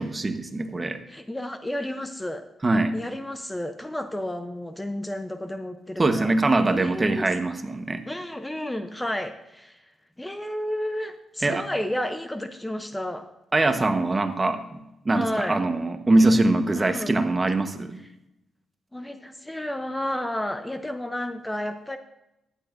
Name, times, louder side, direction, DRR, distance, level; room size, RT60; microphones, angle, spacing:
voice 1, 0.0-1.0 2.6-2.9 6.0-8.0 11.4-11.6 13.5-18.0, right 2 dB, 30° right, 8 dB, 1.2 m, -23 dB
voice 2, 1.1-2.5 2.9-6.4 6.7-7.3 8.0-9.9 10.2-13.3 15.1-15.6 16.8-17.2 18.9-22.0, left 1 dB, 10° left, 9 dB, 0.7 m, -32 dB
15.5 x 10.0 x 2.7 m, 0.90 s
supercardioid pair, 60°, 0 cm